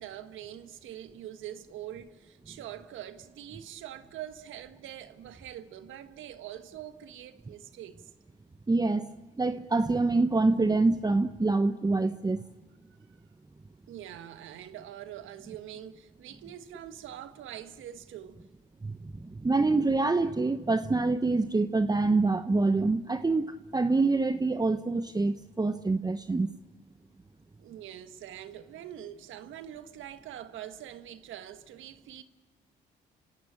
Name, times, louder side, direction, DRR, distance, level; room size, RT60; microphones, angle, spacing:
voice 1, 0.0-8.1 13.9-18.4 27.6-32.2, right 11 dB, 75° right, 1.4 m, -44 dB
voice 2, 8.7-9.1 9.4-12.4 18.8-26.5, right 3 dB, 20° right, 0.9 m, -26 dB
27.5 x 16.5 x 8.7 m
hypercardioid pair, 55°, 20 cm